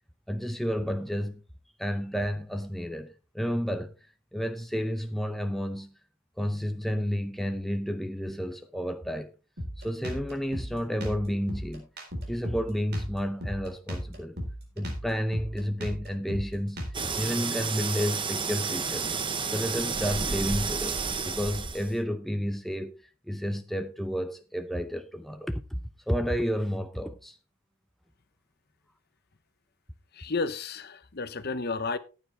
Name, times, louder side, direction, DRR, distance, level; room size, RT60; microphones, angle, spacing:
voice 1, 0.3-1.4 1.8-3.9 4.3-5.9 6.4-9.3 9.8-11.9 12.3-14.4 14.8-16.8 17.1-19.1 19.5-25.8 26.1-27.4, equal, ahead, 0.6 m, -31 dB
Drum kit, 9.6-17.2, equal, 45° right, 3.9 m, -36 dB
sound 1, 16.9-22.0, right 5 dB, 20° right, 0.9 m, -31 dB
voice 2, 30.1-32.0, left 4 dB, 45° left, 0.8 m, -32 dB
14.5 x 9.3 x 3.3 m
head